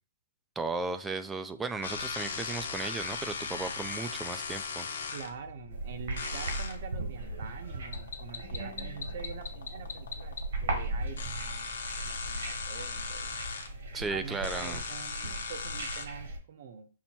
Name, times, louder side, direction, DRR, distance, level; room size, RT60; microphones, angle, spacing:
voice 1, 0.6-4.9 13.9-14.8, right 3 dB, 10° right, 10 dB, 0.3 m, -35 dB
sound 1, 1.8-16.1, left 5 dB, 80° left, 1.0 m, -39 dB
voice 2, 5.1-13.3 14.0-16.9, right 6 dB, 50° right, 9 dB, 0.7 m, -45 dB
sound 2, 5.7-16.4, right 2 dB, 65° right, 1.2 m, -38 dB
5.6 x 2.1 x 4.4 m, 0.38 s
hypercardioid pair, 160°, 0 cm